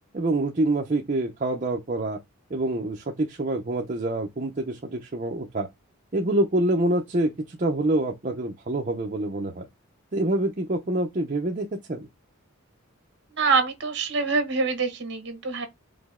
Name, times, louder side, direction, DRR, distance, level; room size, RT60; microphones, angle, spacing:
voice 1, 0.1-2.2 2.5-5.7 6.1-9.7 10.1-12.1, right 2 dB, 35° right, 0.6 m, -26 dB
voice 2, 13.4-15.7, right 4 dB, 50° right, 1.3 m, -25 dB
5.0 x 2.1 x 3.6 m
head